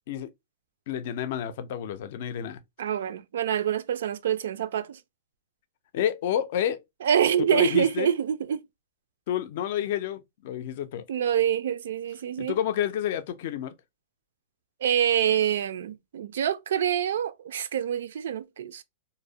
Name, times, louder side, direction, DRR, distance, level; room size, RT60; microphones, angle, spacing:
voice 1, 0.9-2.6 5.9-6.8 7.5-8.1 9.3-11.0 12.4-13.7, left 10 dB, 50° left, 0.4 m, -29 dB
voice 2, 2.8-5.0 7.0-8.6 11.1-12.6 14.8-18.8, right 9 dB, 75° right, 0.3 m, -26 dB
2.6 x 2.0 x 2.6 m
supercardioid pair, 160°, 0 cm